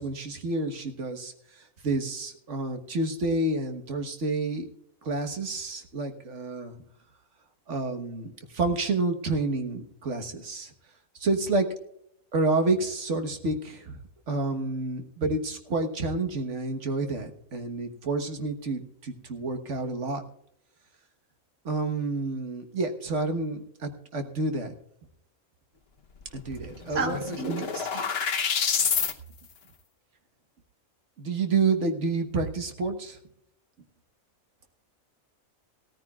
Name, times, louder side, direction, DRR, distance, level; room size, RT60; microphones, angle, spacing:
voice 1, 0.0-4.7 5.0-6.8 7.7-10.7 11.2-11.7 12.3-14.0 14.3-20.2 21.6-24.7 26.3-27.2 27.5-27.7 31.2-33.2, right 3 dB, 60° right, 6 dB, 1.6 m, -29 dB
sound 1, 26.3-26.4 26.6-29.1, left 6 dB, 50° left, 1.1 m, -28 dB
voice 2, 26.9-28.4, right 4 dB, 85° right, 3 dB, 2.2 m, -34 dB
17.5 x 14.0 x 2.4 m, 0.70 s
omnidirectional pair, 1.5 m